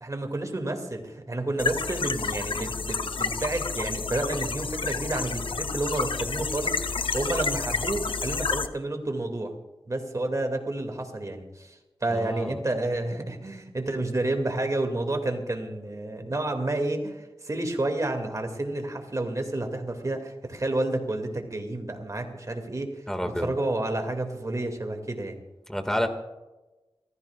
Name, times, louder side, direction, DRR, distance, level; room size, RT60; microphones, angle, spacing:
voice 1, 0.0-9.5 9.9-22.9 23.2-25.4, right 2 dB, 35° right, 4 dB, 2.3 m, -30 dB
sound 1, 1.6-8.7, left 4 dB, 70° left, 0.7 m, -30 dB
voice 2, 12.1-12.6 23.1-23.5 25.7-26.1, equal, 5° left, 5 dB, 1.9 m, -29 dB
29.0 x 15.0 x 2.4 m, 1.1 s
wide cardioid pair, 90°, 9 cm